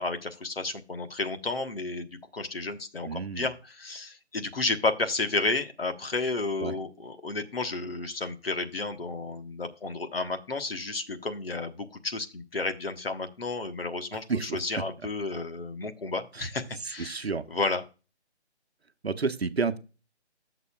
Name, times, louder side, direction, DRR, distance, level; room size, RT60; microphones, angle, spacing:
voice 1, 0.0-17.8, left 3 dB, 55° left, 7 dB, 1.3 m, -32 dB
voice 2, 3.0-3.5 6.6-6.7 14.1-14.6 16.3-16.5 16.7-17.4 19.0-19.8, right 4 dB, 65° right, 10 dB, 1.0 m, -31 dB
11.5 x 6.7 x 2.3 m, 0.31 s
figure-of-eight pair, 165°, 34 cm